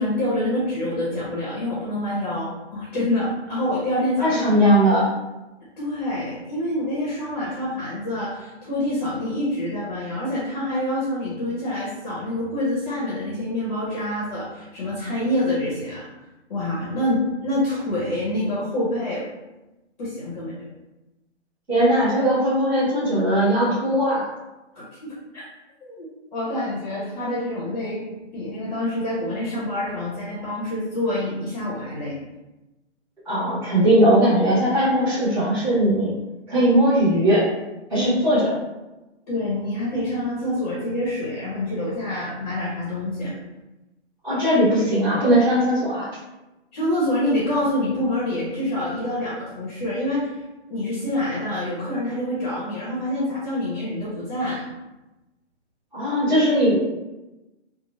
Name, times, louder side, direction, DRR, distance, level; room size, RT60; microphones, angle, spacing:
voice 1, 0.0-4.4 5.8-16.1 16.5-19.2 20.0-20.7 24.7-25.4 25.8-28.0 28.3-32.1 37.9-38.1 39.3-43.3 46.7-50.3 50.7-54.6, left 1 dB, 35° left, -6 dB, 0.7 m, -26 dB
voice 2, 4.2-5.1 21.7-24.2 33.2-36.1 36.5-37.4 37.9-38.5 44.2-46.1 55.9-56.8, equal, 5° right, -18 dB, 0.8 m, -19 dB
2.9 x 2.0 x 2.9 m, 1.0 s
hypercardioid pair, 155°, 36 cm